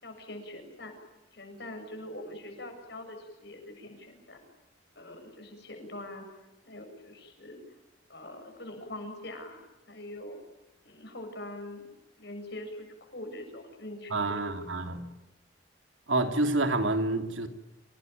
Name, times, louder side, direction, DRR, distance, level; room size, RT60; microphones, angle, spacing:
voice 1, 0.0-1.0 1.3-4.4 5.0-6.3 6.6-7.6 8.1-9.6 9.9-10.4 10.8-11.9 12.2-14.5 14.8-15.0, left 1 dB, 60° left, 5 dB, 7.4 m, -43 dB
voice 2, 14.1-15.1 16.1-17.5, right 2 dB, 85° right, 6 dB, 3.1 m, -28 dB
28.5 x 18.5 x 9.4 m, 1.1 s
head